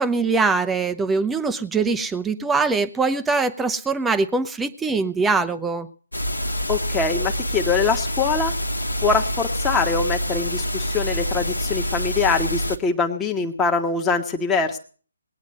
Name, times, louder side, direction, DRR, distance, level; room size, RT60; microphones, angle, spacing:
voice 1, 0.0-5.9, right 4 dB, 5° right, 10 dB, 0.7 m, -22 dB
sound 1, 6.1-12.8, equal, 80° left, 1.4 m, -26 dB
voice 2, 6.7-8.5 9.0-14.8, left 4 dB, 10° left, 2 dB, 1.3 m, -23 dB
19.5 x 9.4 x 6.4 m, 0.42 s
figure-of-eight pair, 145°, 0 cm